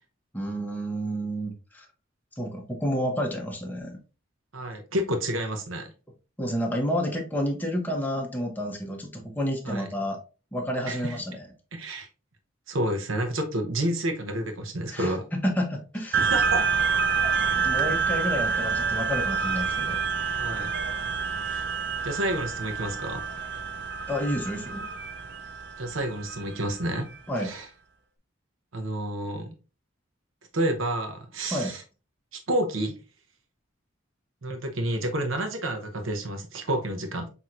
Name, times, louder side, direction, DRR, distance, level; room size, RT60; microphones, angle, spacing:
voice 1, 0.3-1.8 2.4-4.0 6.4-10.2 10.5-11.5 14.9-16.3 17.6-20.0 24.1-24.8 27.3-27.5 31.5-31.8, equal, 10° left, 0.8 m, -30 dB
voice 2, 4.5-5.9 9.6-9.9 10.9-11.2 11.7-12.1 12.7-15.2 16.1-16.7 20.4-20.7 21.5-21.6 22.0-23.3 25.8-27.1 27.4-27.7 28.7-29.5 30.5-31.8 32.3-33.0 34.4-37.3, right 1 dB, 85° right, 0.8 m, -29 dB
sound 1, 16.1-27.0, right 5 dB, 55° right, 0.5 m, -28 dB
5.9 x 2.9 x 2.5 m
head